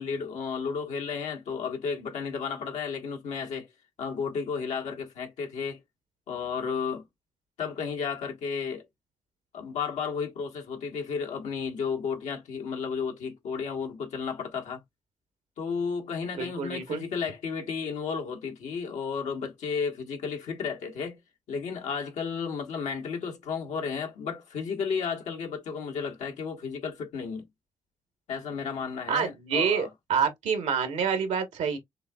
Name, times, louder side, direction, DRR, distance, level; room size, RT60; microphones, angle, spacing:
voice 1, 0.0-3.7 4.0-5.8 6.3-7.0 7.6-8.8 9.5-14.8 15.6-21.2 21.5-27.5 28.3-29.9, left 6 dB, 75° left, 1.4 m, -33 dB
voice 2, 16.3-17.0 29.1-31.8, right 6 dB, 75° right, 1.3 m, -27 dB
6.6 x 2.6 x 2.4 m
hypercardioid pair, 50°, 12 cm